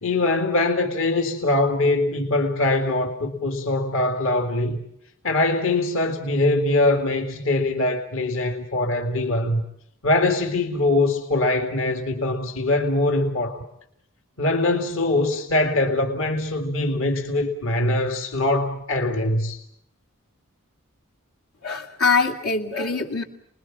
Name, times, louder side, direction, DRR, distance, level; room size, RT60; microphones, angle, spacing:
voice 1, 0.0-4.8 5.2-9.6 10.0-13.6 14.4-19.6, left 2 dB, 60° left, 2.3 m, -22 dB
voice 2, 21.6-23.2, left 4 dB, 80° left, 2.6 m, -23 dB
29.5 x 21.0 x 7.4 m
head